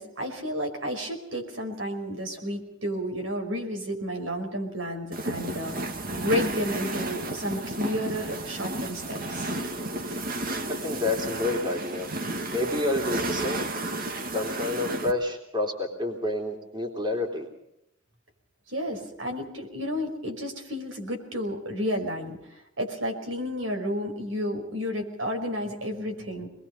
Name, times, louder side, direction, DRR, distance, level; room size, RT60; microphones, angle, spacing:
voice 1, 0.0-5.7 6.1-9.5 18.7-22.4 22.8-26.5, equal, 75° right, 3 dB, 5.3 m, -31 dB
sound 1, 5.1-15.1, right 2 dB, 50° right, 2.0 m, -32 dB
voice 2, 10.8-12.1 12.5-13.7 14.3-17.5, left 2 dB, 25° right, 2 dB, 3.3 m, -29 dB
25.5 x 21.0 x 5.6 m, 0.81 s
head